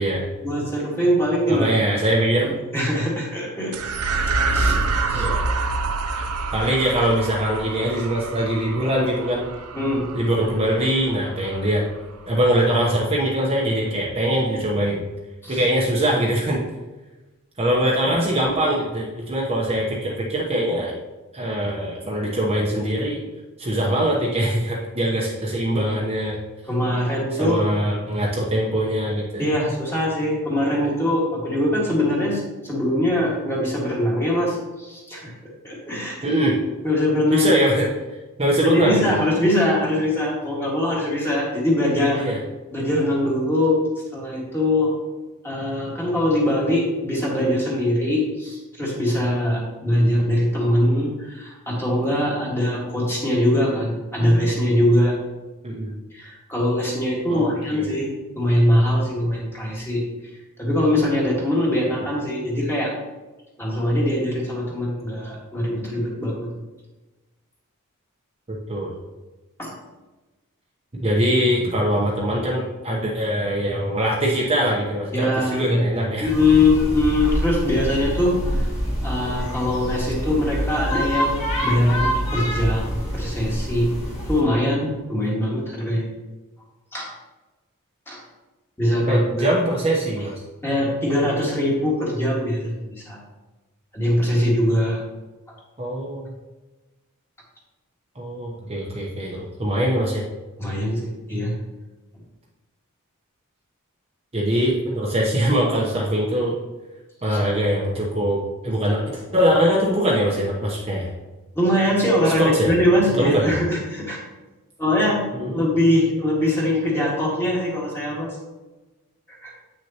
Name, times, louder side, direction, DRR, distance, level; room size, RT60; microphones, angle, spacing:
voice 1, 0.4-1.7 2.4-3.7 4.0-4.8 5.1-5.3 9.7-10.1 15.4-15.6 26.7-27.6 29.4-35.3 35.6-36.4 36.8-37.5 38.6-42.2 42.7-43.9 44.1-45.0 45.4-55.2 56.1-60.0 60.6-62.9 63.6-66.5 69.6-69.7 75.1-75.8 76.2-78.4 79.0-83.9 84.3-86.1 86.9-87.1 88.1-88.2 88.8-89.5 90.6-93.2 93.9-95.0 100.6-101.6 107.3-107.4 111.6-114.2 114.8-115.2 115.5-118.3 119.4-119.5, left 1 dB, 10° left, -4 dB, 1.9 m, -22 dB
voice 2, 1.5-2.5 5.1-5.4 6.5-9.5 10.1-11.8 12.3-15.0 15.5-16.6 17.6-20.9 21.3-23.2 23.6-26.4 27.4-29.4 36.2-36.5 37.3-37.8 38.4-39.2 42.2-42.4 55.6-55.9 57.3-57.9 68.7-68.9 71.0-76.3 89.1-90.3 95.8-96.3 98.1-100.2 104.3-106.5 107.2-111.1 112.4-112.7 113.2-113.5 115.3-115.7, right 1 dB, 25° right, -4 dB, 0.9 m, -22 dB
sound 1, 3.7-12.4, right 3 dB, 80° right, 0.6 m, -27 dB
sound 2, 76.2-84.4, equal, 30° left, 2.2 m, -26 dB
8.4 x 6.3 x 2.9 m, 1.1 s
head